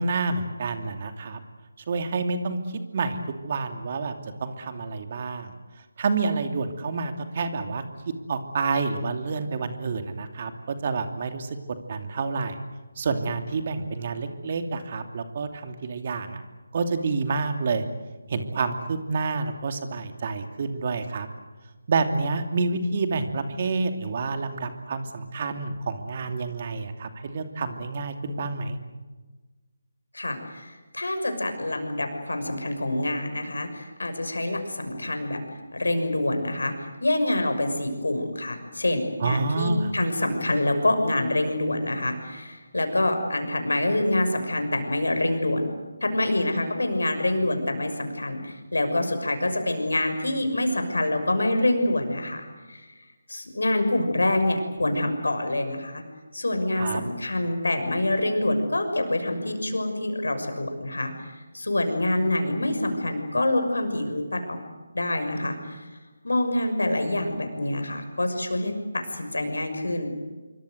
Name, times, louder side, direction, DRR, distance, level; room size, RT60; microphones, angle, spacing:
voice 1, 0.0-1.4 1.9-2.6 2.9-3.2 3.4-5.6 6.0-11.6 11.9-12.6 13.0-16.4 16.7-17.8 18.3-21.3 21.9-28.8 39.2-39.9 56.7-57.0, right 4 dB, 40° right, 6 dB, 2.8 m, -28 dB
voice 2, 30.1-35.4 35.7-45.7 46.0-52.8 53.3-56.0 56.3-64.6 64.9-65.9 66.2-70.1, left 1 dB, 80° left, 6 dB, 6.3 m, -26 dB
26.5 x 24.0 x 8.0 m, 1.2 s
figure-of-eight pair, 155°, 0 cm